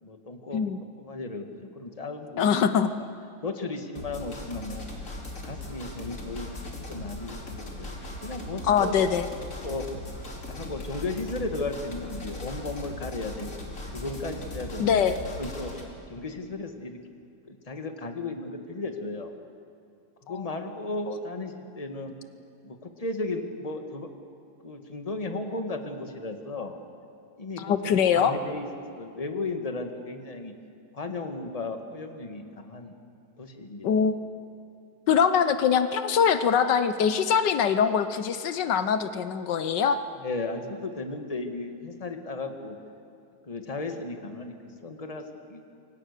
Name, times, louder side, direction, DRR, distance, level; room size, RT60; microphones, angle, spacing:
voice 1, 0.0-2.5 3.0-3.1 3.4-4.9 5.4-7.9 8.2-9.0 9.6-9.9 10.5-13.5 13.9-14.9 15.4-15.7 16.1-17.0 17.5-19.3 20.2-22.1 22.6-24.1 24.6-26.8 27.4-27.7 28.2-28.7 28.9-30.5 30.9-33.0 33.4-34.1 40.2-42.8 43.4-44.5 44.8-45.2 45.5-45.7, left 3 dB, 20° left, 5 dB, 1.7 m, -35 dB
voice 2, 2.4-2.9 8.6-9.3 14.8-15.2 20.3-20.4 27.6-28.3 33.8-34.2 35.1-40.0, left 7 dB, 75° left, 11 dB, 1.5 m, -23 dB
sound 1, 4.0-15.8, left 1 dB, 45° left, 3.4 m, -39 dB
27.5 x 24.0 x 6.7 m, 2.5 s
omnidirectional pair, 1.9 m